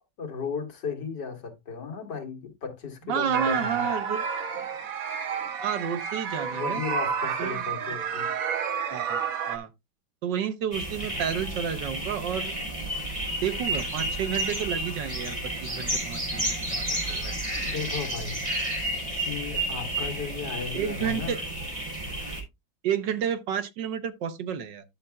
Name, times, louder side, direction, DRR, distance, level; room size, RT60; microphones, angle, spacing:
voice 1, 0.2-3.9 6.5-8.3 17.5-18.4 19.2-21.4, left 5 dB, 75° left, 2.3 m, -35 dB
voice 2, 3.1-4.2 5.6-6.8 7.4-7.7 8.9-9.7 10.2-12.5 13.4-15.4 15.6-17.3 20.7-21.4 22.8-24.8, right 8 dB, 85° right, 1.6 m, -30 dB
sound 1, 3.3-9.6, right 6 dB, 55° right, 1.4 m, -30 dB
sound 2, 10.7-22.4, right 1 dB, 15° right, 3.6 m, -31 dB
11.5 x 6.6 x 2.3 m
omnidirectional pair, 1.9 m